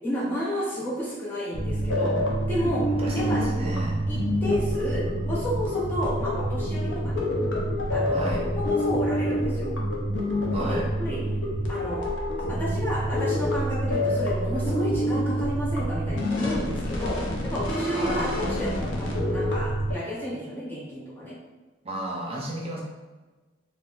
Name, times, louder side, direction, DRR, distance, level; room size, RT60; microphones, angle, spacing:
voice 1, 0.0-2.2 2.5-2.9 3.1-3.4 4.1-7.2 7.9-8.3 8.5-9.7 10.7-11.2 11.7-12.0 12.5-21.4, equal, 10° left, -6 dB, 0.5 m, -31 dB
sound 1, 1.5-19.9, equal, 65° left, 0.6 m, -27 dB
voice 2, 3.0-4.0 8.1-8.5 10.5-10.8 17.9-18.3 21.8-22.8, right 1 dB, 30° right, -4 dB, 0.6 m, -32 dB
3.8 x 2.3 x 2.3 m, 1.3 s
head